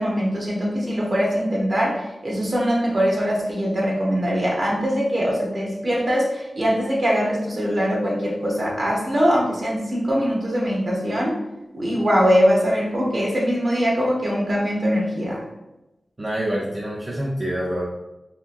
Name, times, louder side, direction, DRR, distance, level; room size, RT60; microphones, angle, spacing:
voice 1, 0.0-11.4 11.7-15.4, equal, 50° right, -3 dB, 0.9 m, -22 dB
voice 2, 16.2-17.8, equal, 35° right, -5 dB, 0.5 m, -26 dB
2.8 x 2.5 x 2.5 m, 0.98 s
cardioid pair, 50°, 0 cm